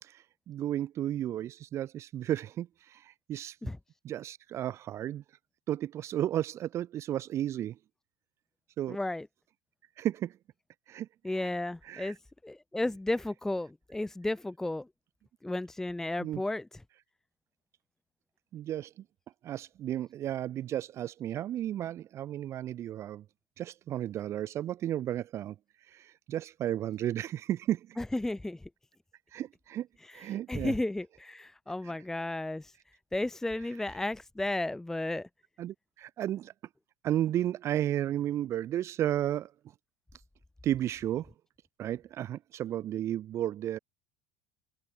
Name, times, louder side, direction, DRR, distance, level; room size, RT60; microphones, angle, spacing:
voice 1, 0.0-3.7 4.0-5.2 5.7-7.8 8.8-9.0 10.0-10.4 10.9-11.5 11.8-12.1 16.2-16.4 18.5-19.0 19.4-23.2 23.6-25.6 25.9-28.0 29.3-29.9 30.1-30.7 31.9-32.0 33.8-33.9 35.6-36.5 37.0-39.5 40.6-41.3 41.8-43.8, right 12 dB, 45° right, 0.7 m, -33 dB
voice 2, 8.9-9.3 11.2-12.2 12.4-14.9 15.4-16.7 28.0-28.6 30.0-32.7 33.1-35.3, left 2 dB, 5° left, 0.8 m, -33 dB
supercardioid pair, 105°, 7 cm